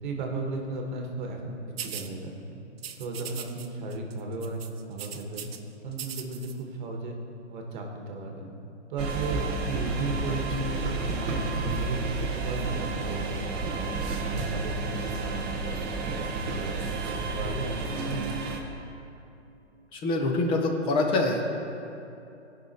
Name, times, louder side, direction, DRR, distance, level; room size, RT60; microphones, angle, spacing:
voice 1, 0.0-2.6 3.0-4.6 4.9-5.5 5.8-7.2 7.5-8.5 8.9-10.8 11.1-13.9 14.2-18.4, right 2 dB, 40° right, 2 dB, 1.5 m, -35 dB
sound 1, 1.8-2.1 2.8-3.7 3.9-4.1 4.4-5.6 5.9-6.5, right 8 dB, 55° right, 0.8 m, -39 dB
sound 2, 9.0-18.6, right 3 dB, 15° right, 0.6 m, -31 dB
voice 2, 19.9-21.4, left 2 dB, 15° left, 2 dB, 0.8 m, -25 dB
17.0 x 5.7 x 4.3 m, 2.7 s
hypercardioid pair, 140°, 36 cm